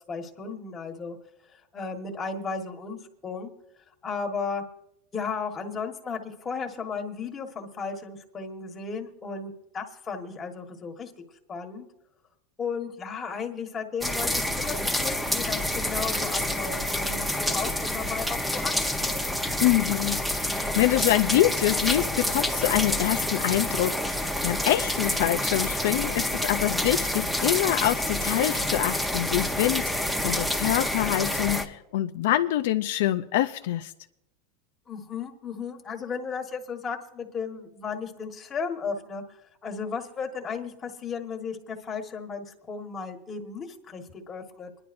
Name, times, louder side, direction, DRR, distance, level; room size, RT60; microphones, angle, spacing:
voice 1, 0.1-1.2 1.5-3.0 3.2-3.5 4.0-4.6 5.1-11.1 11.5-11.9 12.6-19.2 34.9-39.2 39.6-44.7, left 5 dB, 25° left, 1.4 m, -35 dB
sound 1, 14.0-31.7, left 1 dB, ahead, 0.8 m, -28 dB
voice 2, 19.6-33.9, left 14 dB, 75° left, 0.4 m, -25 dB
25.0 x 10.5 x 2.6 m
supercardioid pair, 125°, 0 cm